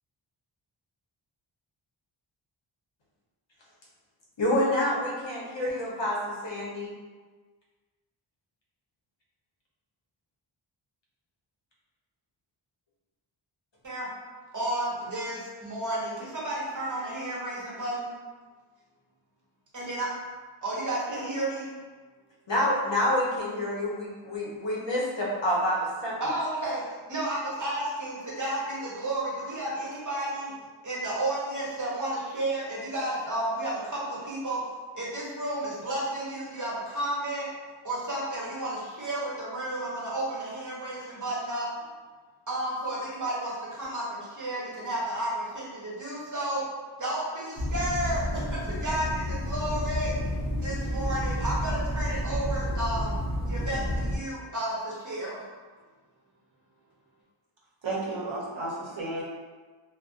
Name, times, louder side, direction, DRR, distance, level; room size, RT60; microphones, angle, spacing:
voice 1, 4.4-6.9 22.5-26.3, left 1 dB, 65° left, -5 dB, 0.8 m, -28 dB
voice 2, 14.5-18.1 19.7-20.1 20.6-21.7 26.2-26.8 27.1-30.5 30.8-34.6 34.9-37.5 37.8-41.7 42.5-46.6 47.0-50.2 50.6-53.1 53.5-55.4, right 1 dB, 40° right, -6 dB, 0.8 m, -32 dB
sound 1, 47.6-54.2, equal, 35° left, 0.6 m, -30 dB
voice 3, 57.8-59.2, right 2 dB, 65° right, -5 dB, 0.7 m, -32 dB
2.5 x 2.1 x 2.4 m, 1.4 s
wide cardioid pair, 65°, 49 cm